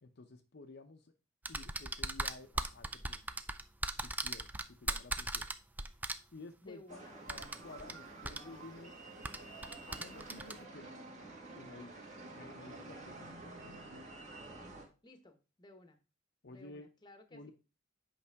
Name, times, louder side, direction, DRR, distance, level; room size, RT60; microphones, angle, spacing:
voice 1, 0.0-1.1 1.5-3.2 4.0-5.5 6.3-9.0 9.4-10.9 11.5-13.8 16.4-16.9 17.3-17.5, left 2 dB, 55° left, 5 dB, 0.7 m, -53 dB
sound 1, 1.4-6.1 7.3-7.9 8.2-8.4 9.2-10.5, right 2 dB, 10° right, 0.3 m, -38 dB
voice 2, 6.6-7.3 15.0-16.0 16.5-17.5, left 2 dB, 20° left, 7 dB, 1.0 m, -57 dB
sound 2, 6.9-14.9, right 2 dB, 35° right, 2.0 m, -51 dB
sound 3, 7.3-14.3, right 2 dB, 60° right, 1.4 m, -57 dB
8.4 x 5.5 x 3.5 m, 0.31 s
head